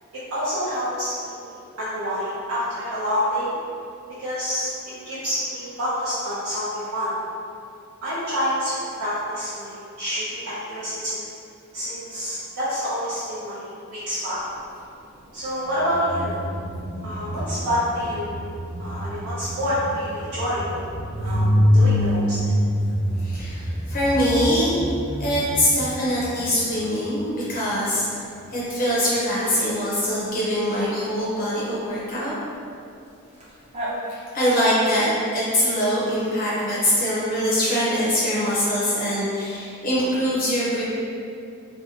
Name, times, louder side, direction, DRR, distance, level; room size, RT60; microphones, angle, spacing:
voice 1, 0.3-3.6 4.2-4.7 5.0-7.1 8.0-11.2 11.7-14.4 15.3-16.4 17.0-18.4 18.8-20.8 21.2-22.4, equal, 75° right, -12 dB, 0.6 m, -27 dB
sound 1, 15.6-27.2 33.4-33.5 33.7-33.9, equal, 30° right, 0.4 m, -26 dB
voice 2, 23.2-24.7 25.2-28.1 28.5-32.3 34.1-40.8, equal, 40° left, -8 dB, 0.5 m, -23 dB
2.6 x 2.1 x 2.7 m, 2.6 s
head